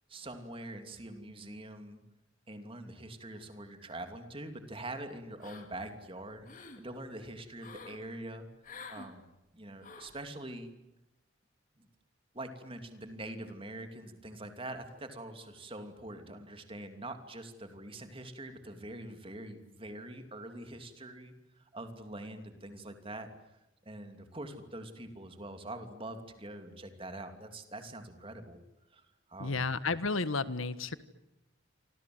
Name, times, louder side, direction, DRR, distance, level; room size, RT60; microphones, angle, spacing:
voice 1, 0.1-2.0 2.5-8.5 8.9-9.2 9.5-10.7 11.8-11.9 12.3-23.3 23.8-28.6 28.9-29.6, right 1 dB, 25° right, 7 dB, 3.0 m, -44 dB
sound 1, 5.4-5.9 6.3-6.8 7.6-8.0 8.6-9.1 9.8-10.2, left 4 dB, 40° left, 3.1 m, -49 dB
voice 2, 29.4-31.0, left 3 dB, 85° left, 14 dB, 1.5 m, -32 dB
28.5 x 26.0 x 8.0 m, 0.92 s
head